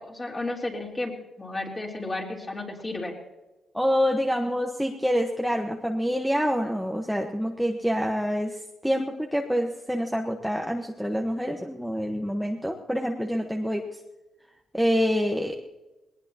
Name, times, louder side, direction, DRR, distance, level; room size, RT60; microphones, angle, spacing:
voice 1, 0.0-3.2, left 2 dB, 25° left, -1 dB, 3.7 m, -33 dB
voice 2, 3.7-8.6 8.8-13.8 14.7-15.6, equal, ahead, 2 dB, 1.2 m, -26 dB
20.0 x 19.0 x 2.9 m, 1.1 s
cardioid pair, 95°, 0 cm